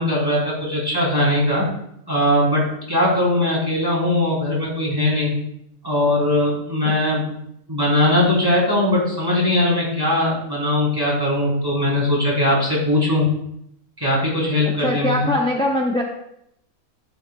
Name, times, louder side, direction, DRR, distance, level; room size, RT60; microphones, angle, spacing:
voice 1, 0.0-1.7 2.1-5.3 5.8-7.3 7.7-13.3 14.0-15.3, left 1 dB, 15° right, -5 dB, 3.5 m, -20 dB
voice 2, 14.8-16.0, left 1 dB, 5° left, 0 dB, 0.5 m, -21 dB
15.0 x 7.8 x 2.4 m, 0.75 s
omnidirectional pair, 1.5 m